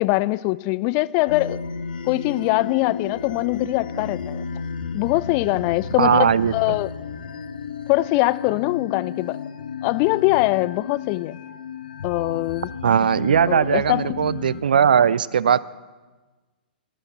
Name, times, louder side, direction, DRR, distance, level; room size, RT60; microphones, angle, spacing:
voice 1, 0.0-1.6 2.1-4.4 4.9-6.9 7.9-9.4 9.8-11.4 12.0-12.7 13.5-14.0, left 21 dB, 30° left, 18 dB, 0.4 m, -22 dB
sound 1, 1.3-14.6, left 6 dB, 60° left, 0.9 m, -33 dB
voice 2, 6.0-6.5 12.8-15.6, right 7 dB, 60° right, 20 dB, 0.4 m, -18 dB
12.5 x 11.5 x 7.4 m, 1.3 s
figure-of-eight pair, 110°, 5 cm